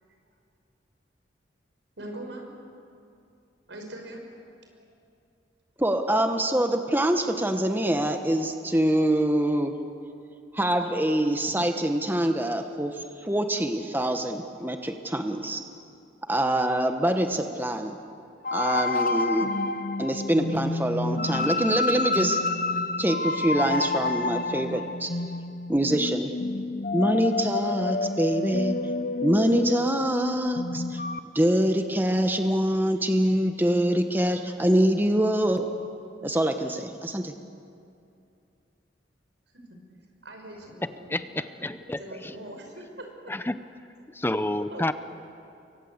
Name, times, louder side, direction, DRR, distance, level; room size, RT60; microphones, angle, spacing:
voice 1, 2.0-2.5 3.7-4.2 4.7-4.8 39.5-39.6 40.2-41.2 41.6-41.7 42.0-43.1 44.7-44.9, right 1 dB, 85° right, 2 dB, 6.1 m, -41 dB
voice 2, 5.8-9.7 10.5-15.6 16.3-18.0 18.5-19.5 20.0-22.4 23.0-25.1 25.7-26.3 26.9-28.8 29.2-31.0 31.3-35.7 36.2-37.3, right 1 dB, 10° right, 5 dB, 1.1 m, -25 dB
sound 1, 18.4-31.2, left 3 dB, 50° left, 0.8 m, -29 dB
voice 3, 40.8-42.4 43.3-43.6 44.1-44.9, left 1 dB, 10° left, 11 dB, 0.6 m, -30 dB
29.0 x 23.5 x 8.0 m, 2.6 s
head